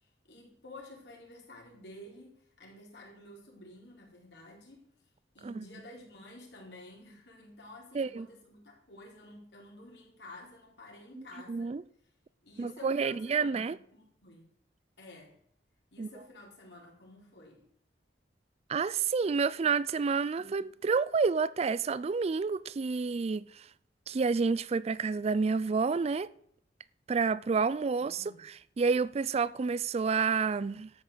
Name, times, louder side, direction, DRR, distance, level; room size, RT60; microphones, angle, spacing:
voice 1, 0.0-4.9 5.3-11.8 12.4-14.5 15.0-15.3 15.9-17.7 28.2-28.4, left 1 dB, 70° left, 4.2 m, -51 dB
voice 2, 7.9-8.3 11.1-11.8 12.6-13.8 16.0-16.1 18.7-23.6 24.1-26.3 27.1-28.2 28.8-30.9, right 5 dB, 35° right, 0.4 m, -29 dB
12.5 x 5.9 x 8.1 m
head